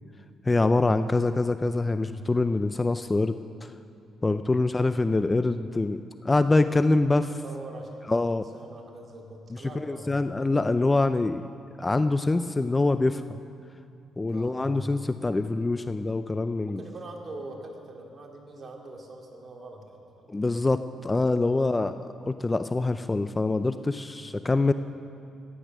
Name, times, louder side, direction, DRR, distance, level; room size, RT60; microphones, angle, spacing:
voice 1, 0.4-3.7 4.2-7.3 8.1-8.4 9.8-11.5 11.8-13.4 14.2-16.8 20.3-24.7, left 2 dB, 20° left, 11 dB, 0.4 m, -25 dB
voice 2, 7.4-10.5 14.3-15.0 16.6-20.3 21.4-21.7, right 2 dB, 40° right, 0 dB, 2.4 m, -43 dB
15.5 x 10.0 x 6.2 m, 2.6 s
cardioid pair, 90°, 0 cm